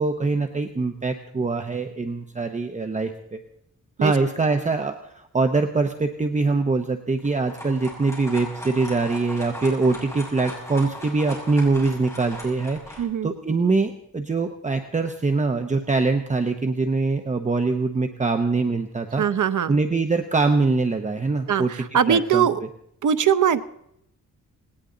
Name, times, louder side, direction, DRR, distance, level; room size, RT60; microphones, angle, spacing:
voice 1, 0.0-3.4 4.0-19.2 19.7-21.7 22.1-22.5, right 3 dB, 25° right, 6 dB, 0.9 m, -23 dB
sound 1, 7.2-13.0, left 1 dB, 10° left, 6.1 m, -38 dB
voice 2, 13.0-13.3 19.2-19.8 21.5-22.6 23.0-23.6, right 8 dB, 70° right, 11 dB, 0.8 m, -21 dB
19.0 x 19.0 x 3.9 m, 0.75 s
wide cardioid pair, 155°, 32 cm